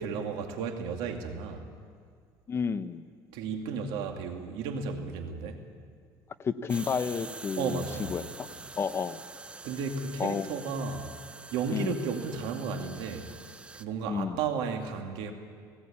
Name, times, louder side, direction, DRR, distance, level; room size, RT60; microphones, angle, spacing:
voice 1, 0.0-1.7 3.3-5.6 7.6-8.1 9.6-11.1 11.5-13.3 13.7-15.3, right 5 dB, 85° right, 4 dB, 2.4 m, -33 dB
voice 2, 2.5-3.1 6.4-8.5 8.8-9.2 10.2-10.5 11.7-12.0 14.1-14.4, left 6 dB, 30° left, 12 dB, 0.8 m, -31 dB
sound 1, 6.7-13.9, right 3 dB, 15° right, 0.7 m, -45 dB
19.0 x 18.0 x 8.7 m, 2.1 s
cardioid pair, 130°, 8 cm